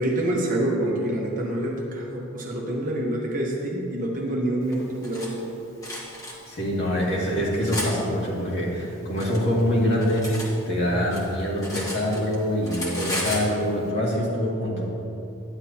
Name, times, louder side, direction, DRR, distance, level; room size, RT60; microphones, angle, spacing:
voice 1, 0.0-5.4, right 1 dB, 40° right, -2 dB, 1.1 m, -26 dB
Cutlery silverware, 4.7-5.3 5.8-6.3 7.0-7.9 8.8-10.5 10.8-12.4 12.6-13.5, equal, 15° left, 1.4 m, -33 dB
voice 2, 6.4-10.3 10.7-14.9, equal, 55° left, -5 dB, 2.1 m, -25 dB
11.5 x 9.9 x 2.9 m, 2.8 s
head